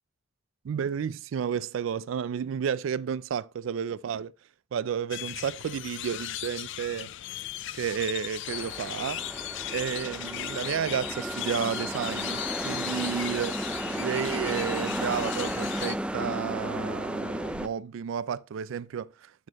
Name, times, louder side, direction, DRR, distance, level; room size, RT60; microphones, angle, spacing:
voice 1, 0.6-4.3 4.7-7.1 7.7-9.2 9.7-13.5 13.8-19.5, right 7 dB, 75° right, 0.3 m, -32 dB
sound 1, 5.1-16.0, left 13 dB, 65° left, 0.4 m, -37 dB
sound 2, 8.5-17.7, right 1 dB, 5° right, 0.4 m, -34 dB
13.0 x 4.3 x 2.9 m
head